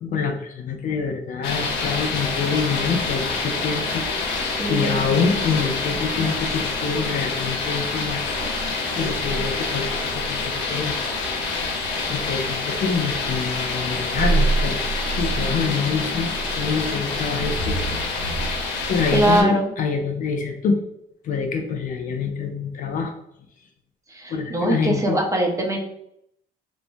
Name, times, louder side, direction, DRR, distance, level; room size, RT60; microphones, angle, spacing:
voice 1, 0.0-4.0 4.7-8.3 8.9-11.2 12.1-14.8 15.1-17.8 18.5-20.8 21.2-23.1 24.3-25.2, left 5 dB, 50° left, 4 dB, 0.5 m, -26 dB
sound 1, 1.4-19.4, left 2 dB, 80° left, 0.9 m, -26 dB
voice 2, 4.4-5.0 19.1-19.7 24.1-25.8, right 1 dB, 20° right, 1 dB, 0.6 m, -22 dB
3.1 x 2.1 x 2.6 m, 0.74 s
cardioid pair, 110°, 17 cm